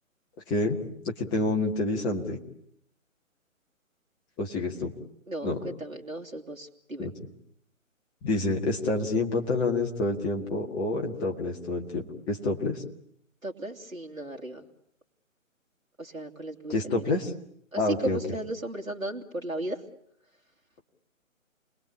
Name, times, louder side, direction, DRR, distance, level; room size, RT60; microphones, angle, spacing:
voice 1, 0.5-0.8 1.2-2.4 4.4-4.9 5.4-5.6 7.0-7.1 8.2-12.8 16.7-17.3 17.8-18.2, left 2 dB, 10° left, 1 dB, 1.9 m, -28 dB
voice 2, 5.3-7.1 13.4-14.7 16.0-17.0 17.7-19.8, right 1 dB, 75° right, 0 dB, 3.1 m, -35 dB
30.0 x 21.5 x 8.7 m, 0.71 s
figure-of-eight pair, 145°, 40 cm